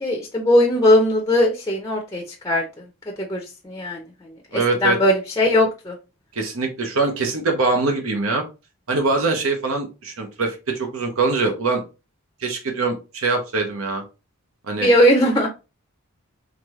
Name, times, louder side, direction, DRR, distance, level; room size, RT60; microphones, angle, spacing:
voice 1, 0.0-2.7 3.2-4.0 4.5-6.0 14.7-15.5, left 1 dB, 15° left, 1 dB, 0.6 m, -19 dB
voice 2, 4.5-5.0 6.4-8.5 8.9-11.8 12.4-14.0 14.7-14.9, right 3 dB, 70° right, 3 dB, 0.9 m, -23 dB
4.1 x 3.2 x 3.0 m, 0.29 s
head